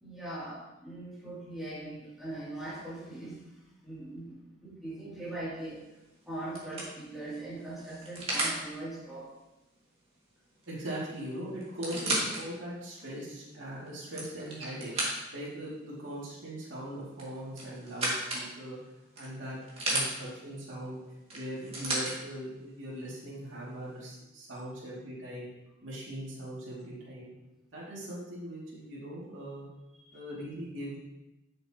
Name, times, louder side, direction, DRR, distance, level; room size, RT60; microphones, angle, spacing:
voice 1, 0.0-5.8 6.3-9.3 30.0-30.2, right 1 dB, ahead, -10 dB, 2.9 m, -41 dB
sound 1, 5.7-6.0 6.5-8.6 10.6-10.7 11.0-11.1 11.6-12.4 13.0-13.1 13.9-15.5 17.1-18.5 19.2-20.1 21.3-22.1 23.1-23.2, right 1 dB, 30° right, 2.2 m, -33 dB
voice 2, 10.7-14.9 15.3-18.8 19.2-19.6 19.9-21.0 21.3-25.5 25.8-27.3 27.7-29.7 30.1-31.0, equal, 75° right, -7 dB, 2.6 m, -40 dB
12.0 x 6.5 x 3.0 m, 0.98 s
head